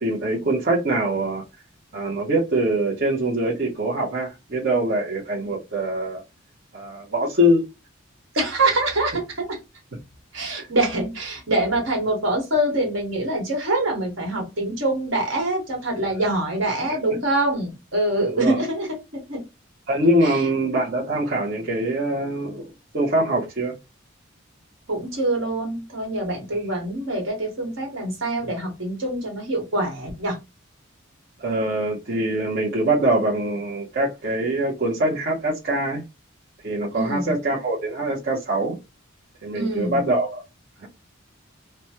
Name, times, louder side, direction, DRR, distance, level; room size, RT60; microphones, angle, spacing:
voice 1, 0.0-1.4 1.9-6.2 6.7-7.6 10.5-10.7 16.1-16.3 18.3-18.6 19.9-23.8 31.4-36.0 36.6-38.8 39.4-40.4, right 1 dB, 50° right, 0.8 m, -23 dB
voice 2, 8.3-9.6 10.3-18.9 19.3-19.4 20.2-20.4 24.9-30.4 36.9-37.3 39.5-40.0, right 2 dB, 70° right, 1.5 m, -25 dB
3.0 x 2.2 x 2.9 m
head